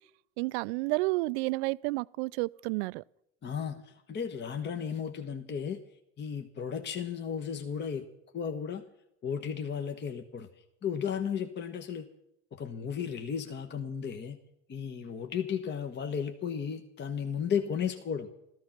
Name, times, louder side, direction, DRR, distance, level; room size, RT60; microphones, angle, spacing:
voice 1, 0.4-3.0, right 23 dB, 60° right, 0.5 m, -30 dB
voice 2, 3.4-5.8 6.2-8.1 8.3-8.8 9.2-10.5 10.8-12.1 12.5-14.4 14.7-18.3, left 7 dB, 30° left, 1.2 m, -34 dB
15.0 x 14.0 x 5.9 m
hypercardioid pair, 100°, 38 cm